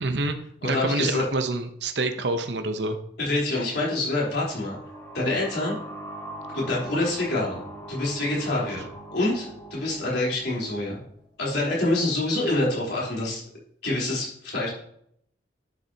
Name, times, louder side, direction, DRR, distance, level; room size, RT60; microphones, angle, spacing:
voice 1, 0.0-3.0, right 2 dB, 70° right, 7 dB, 0.8 m, -27 dB
voice 2, 0.6-1.2 3.2-4.8 5.1-5.8 6.5-8.9 9.1-11.0 11.4-13.4 13.8-14.7, left 2 dB, 70° left, -5 dB, 3.8 m, -26 dB
sound 1, 4.1-11.5, right 1 dB, 10° left, 3.3 m, -42 dB
11.0 x 6.8 x 2.9 m, 0.68 s
head